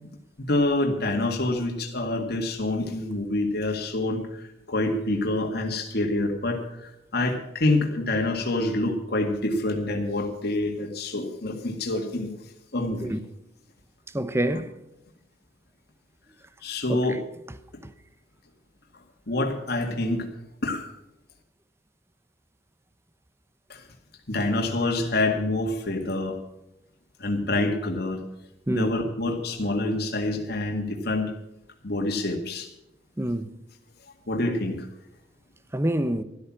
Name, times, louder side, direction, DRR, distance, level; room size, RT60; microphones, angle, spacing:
voice 1, 0.4-12.3 12.7-13.1 16.6-17.2 19.3-20.3 20.6-20.9 23.7-23.8 24.3-26.4 27.2-28.2 28.7-31.3 31.8-32.7 34.3-34.9, left 2 dB, 60° left, 2.0 m, -27 dB
voice 2, 14.1-14.7 16.9-17.2 28.7-28.9 33.2-33.5 35.7-36.2, right 1 dB, 15° right, 0.8 m, -26 dB
13.0 x 13.0 x 6.1 m
head